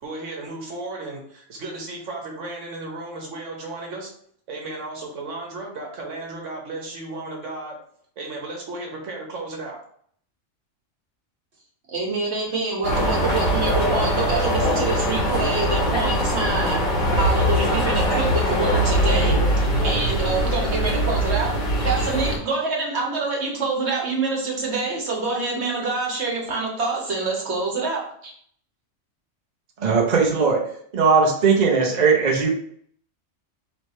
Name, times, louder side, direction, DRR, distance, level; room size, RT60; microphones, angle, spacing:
voice 1, 0.0-4.1 4.5-7.8 8.2-9.8, right 2 dB, 80° right, 0 dB, 1.3 m, -34 dB
voice 2, 11.9-16.8 17.2-28.3, right 3 dB, 65° right, -2 dB, 1.4 m, -26 dB
sound 1, 12.8-22.4, equal, 45° left, 1.2 m, -22 dB
voice 3, 29.8-30.6 30.9-32.5, right 5 dB, 40° right, -1 dB, 0.8 m, -18 dB
3.3 x 3.1 x 4.2 m, 0.63 s
omnidirectional pair, 1.2 m